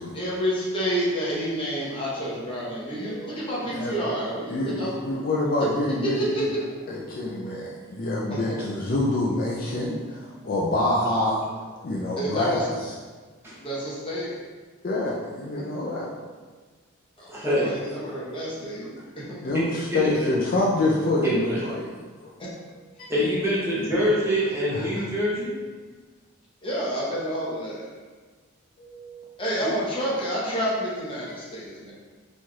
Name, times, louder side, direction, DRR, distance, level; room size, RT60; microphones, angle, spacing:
voice 1, 0.1-5.2 6.0-6.8 8.3-8.4 12.2-12.7 13.6-14.4 15.6-15.7 17.2-18.9 19.2-19.4 22.4-22.5 23.0-23.1 26.6-27.9 29.4-31.9, equal, 25° left, -6 dB, 0.9 m, -29 dB
voice 2, 4.5-6.5 6.9-11.4 11.8-12.7 14.8-16.1 18.1-18.3 18.6-18.8 19.4-21.9 22.2-22.3 23.0-23.1 24.7-25.1 28.8-29.3, left 2 dB, 45° left, -3 dB, 0.4 m, -26 dB
voice 3, 17.3-17.8 18.8-18.9 19.5-19.6 19.9-20.3 21.2-21.6 23.1-25.5 29.6-29.7, equal, 10° right, -8 dB, 0.9 m, -25 dB
4.3 x 3.1 x 2.3 m, 1.4 s
head